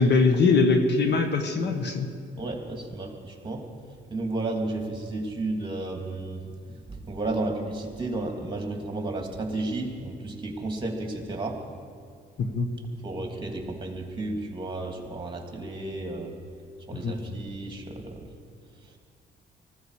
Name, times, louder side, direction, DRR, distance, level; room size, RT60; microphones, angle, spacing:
voice 1, 0.0-2.1 12.4-12.7 16.9-17.1, left 4 dB, 60° left, 6 dB, 1.6 m, -22 dB
voice 2, 2.4-3.6 4.1-6.4 6.7-11.6 13.0-16.3 16.9-18.2, right 2 dB, 25° right, 2 dB, 2.9 m, -32 dB
19.0 x 15.0 x 5.0 m, 2.2 s
cardioid pair, 90°, 20 cm